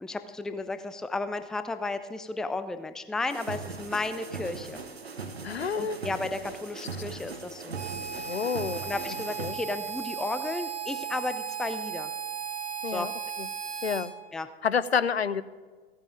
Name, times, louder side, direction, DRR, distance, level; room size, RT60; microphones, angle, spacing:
voice 1, 0.0-4.8 5.7-7.8 8.8-12.1 12.9-13.1 14.3-14.5, left 3 dB, ahead, 11 dB, 0.4 m, -33 dB
sound 1, 3.3-9.5, right 4 dB, 80° right, 1.1 m, -39 dB
voice 2, 5.4-6.0 8.2-8.9 9.4-9.5 12.8-13.1 13.4-13.5 13.8-14.1 14.6-15.4, left 6 dB, 85° left, 19 dB, 0.6 m, -28 dB
Harmonica, 7.7-14.1, right 7 dB, 25° right, 1.9 m, -36 dB
15.5 x 9.7 x 5.1 m, 1.5 s
figure-of-eight pair, 85°, 31 cm